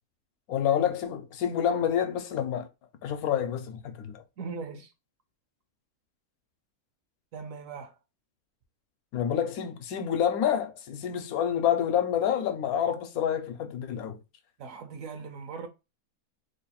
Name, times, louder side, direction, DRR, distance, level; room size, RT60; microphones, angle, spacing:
voice 1, 0.5-2.7 3.0-4.2 9.1-14.2, left 9 dB, 80° left, 1.1 m, -28 dB
voice 2, 4.4-4.9 7.3-8.0 14.6-15.7, right 5 dB, 70° right, 1.0 m, -39 dB
3.1 x 2.3 x 4.1 m
omnidirectional pair, 1.5 m